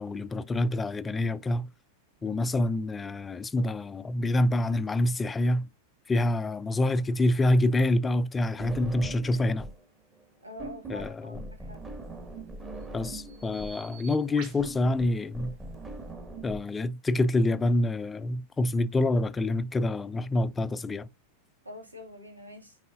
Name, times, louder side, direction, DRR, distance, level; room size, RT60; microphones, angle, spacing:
voice 1, 0.0-1.7 2.2-5.7 6.1-9.7 10.9-11.4 12.9-15.6 16.4-21.1, left 1 dB, 15° left, 0.5 m, -27 dB
sound 1, 8.6-9.9 10.1-16.6, right 2 dB, 15° right, 1.9 m, -41 dB
voice 2, 10.4-11.8 21.6-22.8, left 1 dB, 80° right, 2.1 m, -45 dB
Bird vocalization bird call bird song, 11.9-16.1, right 6 dB, 45° right, 4.3 m, -51 dB
9.3 x 4.8 x 2.5 m
figure-of-eight pair, 90°, 0 cm